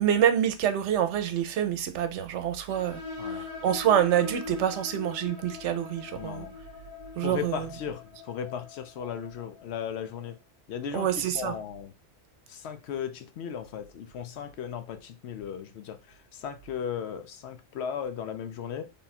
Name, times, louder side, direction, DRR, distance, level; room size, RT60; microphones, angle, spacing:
voice 1, 0.0-3.0 3.6-6.4 7.2-7.7 10.9-11.5, right 10 dB, 80° right, 0.9 m, -26 dB
sound 1, 2.7-10.0, left 4 dB, 25° left, 1.1 m, -42 dB
voice 2, 3.2-3.5 6.1-6.6 7.2-10.4 10.7-11.9 12.5-18.9, left 8 dB, 70° left, 0.8 m, -36 dB
3.6 x 2.3 x 4.0 m
omnidirectional pair, 1.2 m